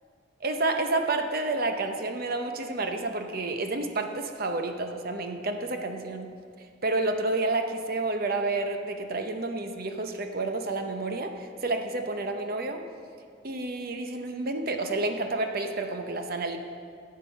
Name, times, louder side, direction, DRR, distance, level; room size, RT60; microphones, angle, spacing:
voice 1, 0.4-6.3 6.8-12.8 13.4-16.6, right 2 dB, 50° right, 5 dB, 0.8 m, -30 dB
13.0 x 7.5 x 5.4 m, 2.3 s
head